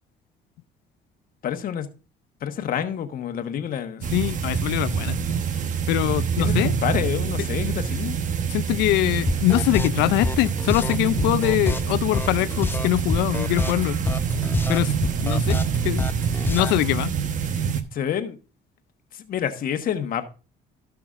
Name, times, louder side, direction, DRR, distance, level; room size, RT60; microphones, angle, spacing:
voice 1, 1.4-1.9 2.4-4.0 6.4-8.2 17.9-18.4 19.1-20.2, left 9 dB, 55° left, 1.2 m, -28 dB
sound 1, 4.0-17.8, right 6 dB, 50° right, 1.0 m, -26 dB
voice 2, 4.1-5.2 5.9-6.7 8.5-14.0 14.7-14.9 15.2-16.1 16.5-17.1, left 18 dB, 90° left, 0.4 m, -23 dB
sound 2, 9.3-16.8, left 3 dB, 10° left, 0.6 m, -27 dB
16.5 x 5.9 x 2.4 m
cardioid pair, 110°, 17 cm